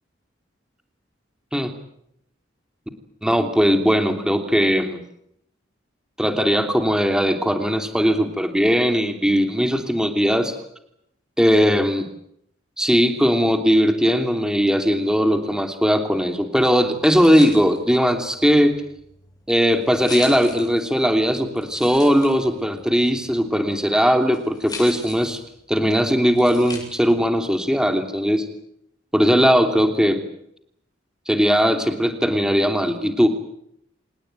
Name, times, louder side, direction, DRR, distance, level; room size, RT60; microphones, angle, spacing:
voice 1, 3.2-5.0 6.2-10.5 11.4-12.1 12.8-18.8 19.5-25.4 25.7-28.5 29.1-30.2 31.3-33.3, equal, 5° right, 6 dB, 3.0 m, -19 dB
sound 1, 16.8-27.3, left 3 dB, 20° left, 7.7 m, -41 dB
27.5 x 19.0 x 9.1 m, 0.75 s
head